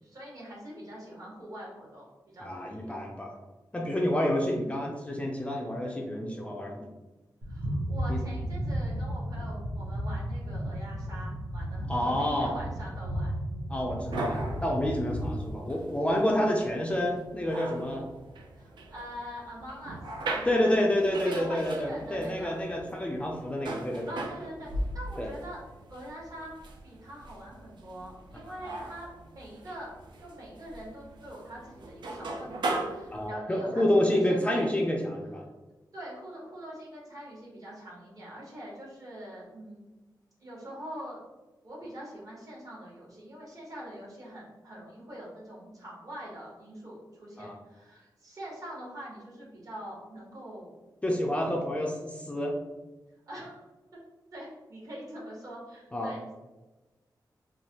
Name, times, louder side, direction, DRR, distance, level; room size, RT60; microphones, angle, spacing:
voice 1, 0.0-3.0 7.5-13.3 18.5-20.0 20.3-20.8 21.1-22.6 24.1-25.6 25.9-26.5 26.8-29.9 30.2-33.8 34.1-34.6 35.9-39.9 40.4-41.2 41.6-50.7 53.3-53.6 54.3-56.2, equal, 50° right, -5 dB, 1.1 m, -44 dB
voice 2, 2.4-3.4 3.7-6.9 7.7-7.8 8.1-8.2 11.9-12.5 13.7-18.1 20.4-24.1 25.2-25.3 33.1-35.4 47.4-47.5 51.0-52.6 55.9-56.1, left 1 dB, 15° left, -1 dB, 0.3 m, -28 dB
sound 1, 7.4-15.5, equal, 70° right, 0.8 m, -34 dB
sound 2, 14.0-33.3, right 2 dB, 90° right, 0.4 m, -39 dB
3.1 x 2.2 x 2.8 m, 1.1 s
wide cardioid pair, 150°, 8 cm